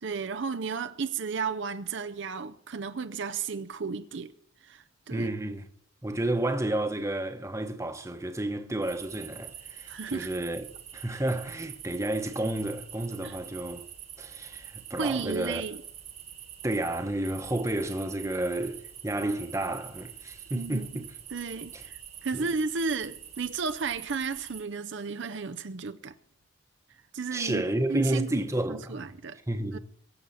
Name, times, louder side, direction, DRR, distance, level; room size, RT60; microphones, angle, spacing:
voice 1, 0.0-4.3 4.6-5.3 9.9-10.3 13.2-13.4 15.0-15.8 20.5-21.0 21.3-26.2 27.1-27.6 27.9-29.4 29.7-29.8, right 5 dB, 60° right, 0.6 m, -33 dB
voice 2, 5.1-5.7 6.0-10.7 10.9-13.9 14.2-15.6 16.6-21.1 21.7-21.8 22.3-22.5 27.3-29.0 29.5-29.8, right 1 dB, 15° right, 1.1 m, -31 dB
sound 1, 8.8-24.7, right 9 dB, 30° right, 1.4 m, -46 dB
23.0 x 7.9 x 5.7 m
head